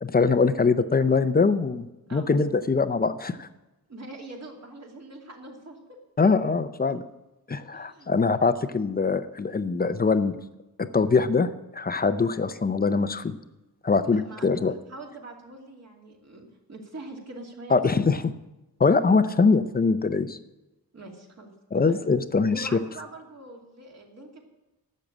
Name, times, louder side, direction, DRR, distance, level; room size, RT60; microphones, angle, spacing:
voice 1, 0.0-3.5 6.2-7.0 7.5-10.3 10.8-13.4 13.8-14.7 17.7-18.3 18.8-20.4 21.7-22.7, left 4 dB, 25° left, 12 dB, 0.6 m, -23 dB
voice 2, 3.9-5.8 7.7-8.1 14.0-14.6 14.9-18.1 20.9-21.9 22.5-24.4, right 2 dB, 45° right, 0 dB, 2.6 m, -43 dB
12.0 x 7.6 x 8.5 m, 1.0 s
wide cardioid pair, 140°, 36 cm